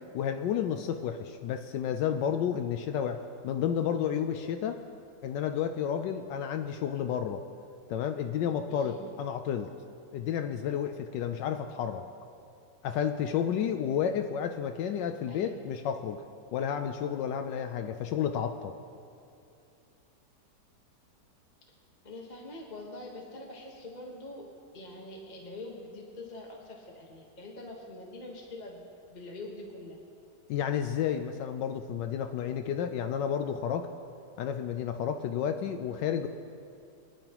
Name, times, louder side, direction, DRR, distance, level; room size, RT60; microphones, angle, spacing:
voice 1, 0.1-4.8 5.2-7.4 7.9-9.7 10.1-12.0 12.8-16.2 16.5-18.7 30.5-33.9 34.4-36.3, left 8 dB, 80° left, 7 dB, 1.2 m, -31 dB
voice 2, 8.6-9.1 15.3-15.6 22.0-24.5 24.7-28.8 29.1-30.0, left 1 dB, 25° left, -2 dB, 1.3 m, -44 dB
23.0 x 11.0 x 3.0 m, 2.5 s
omnidirectional pair, 1.9 m